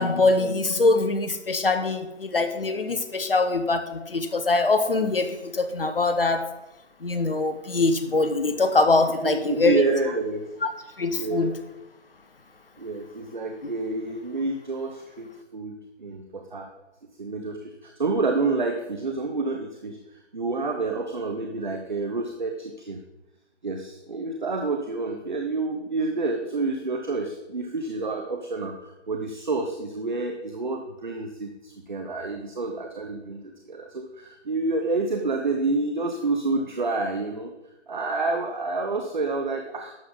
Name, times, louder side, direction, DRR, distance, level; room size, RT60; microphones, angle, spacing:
voice 1, 0.0-6.4 7.0-9.8 11.0-11.5, left 3 dB, 50° left, 8 dB, 1.0 m, -23 dB
voice 2, 9.2-10.5 11.2-11.6 12.8-16.7 17.2-20.0 20.3-23.0 23.6-37.5 37.9-40.0, right 3 dB, 40° right, 4 dB, 0.8 m, -28 dB
11.5 x 7.7 x 4.0 m, 0.96 s
figure-of-eight pair, 155°, 36 cm